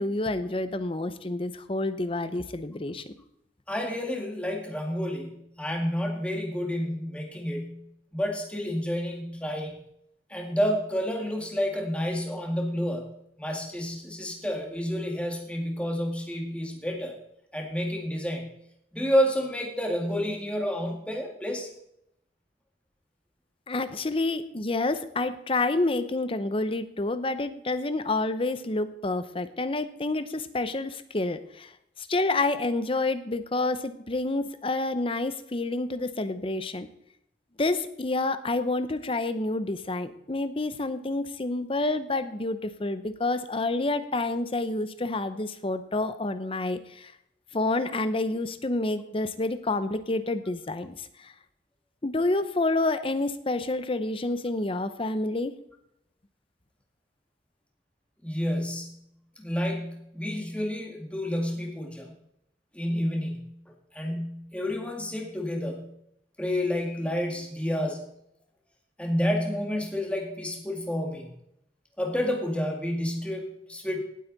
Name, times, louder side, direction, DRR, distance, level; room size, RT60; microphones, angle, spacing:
voice 1, 0.0-3.1 23.7-31.7 32.0-36.9 37.6-47.1 47.5-51.3 52.0-55.5, left 2 dB, 30° left, 11 dB, 0.7 m, -28 dB
voice 2, 3.7-9.8 10.3-17.2 17.5-18.5 18.9-21.7 58.2-59.0 59.4-62.1 62.7-63.6 63.9-65.9 66.4-68.1 69.0-71.3 72.0-74.0, equal, 5° left, 1 dB, 2.1 m, -30 dB
18.0 x 8.1 x 4.0 m, 0.76 s
head